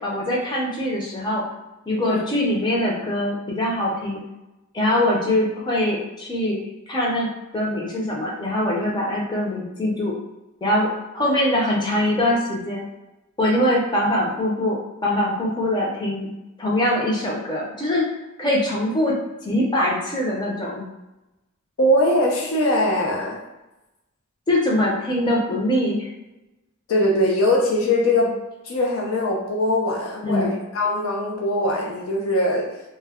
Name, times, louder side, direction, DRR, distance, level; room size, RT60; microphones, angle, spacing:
voice 1, 0.0-1.4 1.9-4.2 4.7-6.6 6.9-7.3 7.5-10.1 10.6-12.8 13.4-16.3 16.6-18.1 18.4-19.1 19.4-20.9 24.5-26.1 30.2-30.6, left 1 dB, 20° left, -4 dB, 0.6 m, -23 dB
voice 2, 21.8-23.4 26.9-32.8, left 1 dB, 75° left, -1 dB, 0.5 m, -21 dB
2.2 x 2.1 x 3.5 m, 1.0 s
head